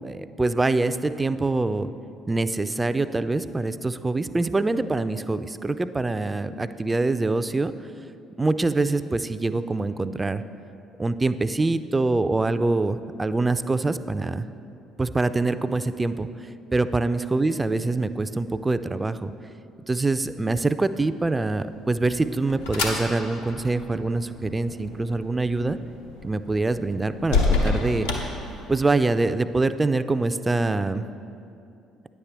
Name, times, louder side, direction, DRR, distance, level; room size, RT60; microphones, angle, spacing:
voice 1, 0.0-1.9 2.3-7.7 8.4-10.4 11.0-14.5 15.0-16.3 16.7-19.3 19.9-25.8 26.2-28.1 28.7-31.1, right 3 dB, 20° right, 12 dB, 0.3 m, -24 dB
sound 1, 21.7-29.1, left 3 dB, 85° left, 0.8 m, -29 dB
9.5 x 7.2 x 3.4 m, 2.7 s
hypercardioid pair, 55°, 0 cm